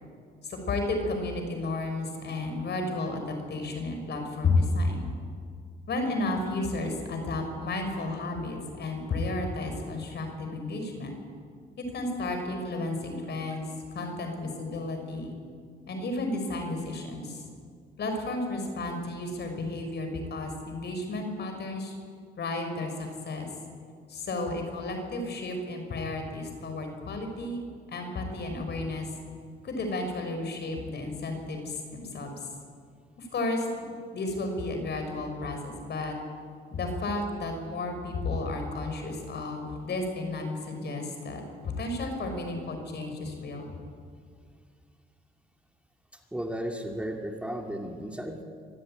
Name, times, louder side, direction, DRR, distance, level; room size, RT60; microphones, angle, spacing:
voice 1, 0.4-5.1 5.9-11.1 11.8-15.3 15.9-17.4 18.0-22.0 22.4-23.5 24.1-27.6 27.9-29.1 29.6-32.3 33.2-33.9 34.1-36.1 36.7-43.7, left 2 dB, 60° left, 5 dB, 5.5 m, -32 dB
voice 2, 46.3-48.4, equal, 5° right, 2 dB, 2.4 m, -34 dB
24.5 x 15.0 x 8.9 m, 2.1 s
cardioid pair, 90°, 20 cm